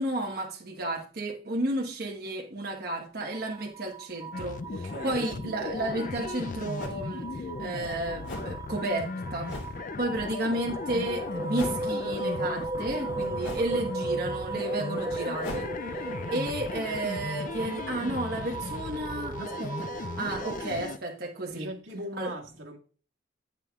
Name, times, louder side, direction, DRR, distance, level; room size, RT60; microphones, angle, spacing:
voice 1, 0.0-4.6 5.0-9.5 10.0-21.7 22.2-22.3, right 1 dB, 50° right, 1.2 m, -32 dB
sound 1, 3.3-20.7, right 3 dB, 15° right, 0.5 m, -37 dB
sound 2, 4.3-21.0, left 3 dB, 40° left, 0.4 m, -37 dB
voice 2, 4.7-5.3 21.5-22.8, right 1 dB, 85° right, 1.7 m, -39 dB
sound 3, 5.8-5.9 6.8-7.0 8.2-8.6 9.4-9.8 11.5-11.9 13.4-13.8 15.4-15.7, left 1 dB, 70° left, 3.3 m, -39 dB
11.0 x 9.0 x 2.4 m
head